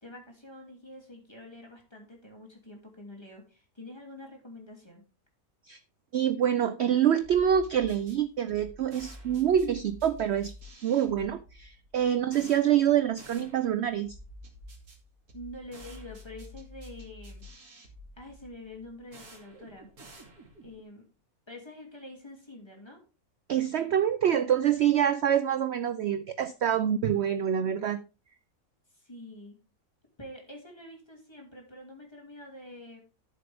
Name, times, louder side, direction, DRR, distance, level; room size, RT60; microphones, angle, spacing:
voice 1, 0.0-5.0 12.4-12.5 15.3-17.5 18.2-19.9 20.6-21.0 21.5-23.0 28.9-29.6 30.2-33.0, left 1 dB, 15° left, 0 dB, 2.8 m, -46 dB
voice 2, 6.1-10.5 10.8-14.2 23.5-28.0, right 9 dB, 60° right, 12 dB, 0.8 m, -26 dB
sound 1, 7.2-20.8, equal, 90° right, 3.0 m, -49 dB
12.5 x 6.9 x 3.5 m, 0.33 s
omnidirectional pair, 1.5 m